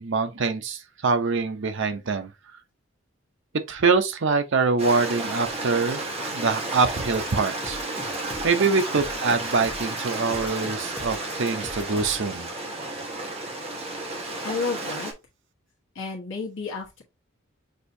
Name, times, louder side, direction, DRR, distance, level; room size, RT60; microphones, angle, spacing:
voice 1, 0.0-2.3 3.7-6.0 6.3-7.8 8.4-12.5, right 4 dB, 60° right, 0.7 m, -24 dB
Stream, 4.8-15.1, right 2 dB, 30° right, 1.0 m, -32 dB
sound 1, 7.0-12.3, left 1 dB, 25° left, 1.1 m, -42 dB
voice 2, 14.4-15.1 15.9-17.0, left 4 dB, 65° left, 1.1 m, -31 dB
6.4 x 2.6 x 2.7 m
head